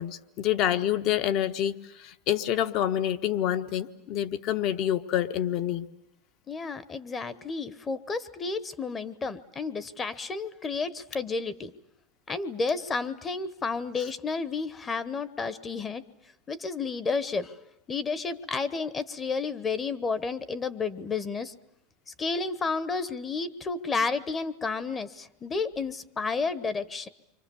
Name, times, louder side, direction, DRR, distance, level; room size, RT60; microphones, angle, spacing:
voice 1, 0.0-5.9, left 11 dB, 50° left, 10 dB, 1.2 m, -27 dB
voice 2, 6.5-11.7 12.3-16.0 16.5-17.6 17.9-21.5 22.2-27.1, left 4 dB, 20° left, 15 dB, 1.0 m, -31 dB
29.5 x 24.5 x 7.1 m, 0.84 s
supercardioid pair, 135°, 0 cm